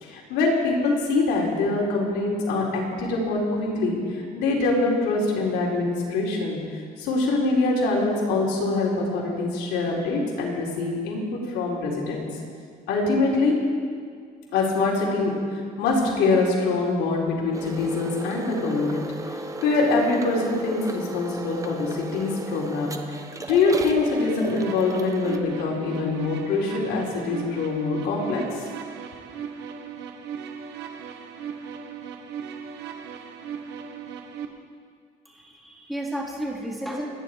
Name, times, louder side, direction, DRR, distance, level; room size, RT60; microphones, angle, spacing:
voice 1, 0.0-6.6 7.0-12.3 12.9-13.5 14.5-28.7, left 3 dB, 85° left, -3 dB, 4.3 m, -24 dB
sound 1, 17.5-25.4, right 1 dB, 20° right, 1.2 m, -35 dB
sound 2, 24.0-34.5, right 7 dB, 85° right, 1.5 m, -37 dB
voice 2, 35.3-37.1, right 1 dB, ahead, -3 dB, 2.8 m, -32 dB
28.0 x 10.5 x 4.8 m, 2.1 s
cardioid pair, 110°, 17 cm